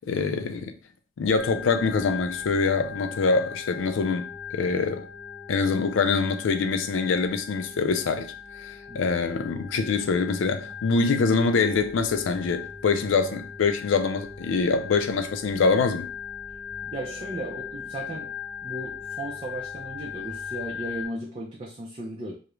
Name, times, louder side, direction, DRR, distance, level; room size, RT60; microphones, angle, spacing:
voice 1, 0.1-0.7 1.2-5.1 5.5-8.3 8.6-16.1, left 4 dB, 85° left, 0.4 m, -24 dB
Organ, 1.4-21.1, left 7 dB, 15° left, 0.7 m, -39 dB
voice 2, 16.8-18.3 18.6-22.4, right 1 dB, 30° right, 0.4 m, -36 dB
2.4 x 2.0 x 3.0 m
head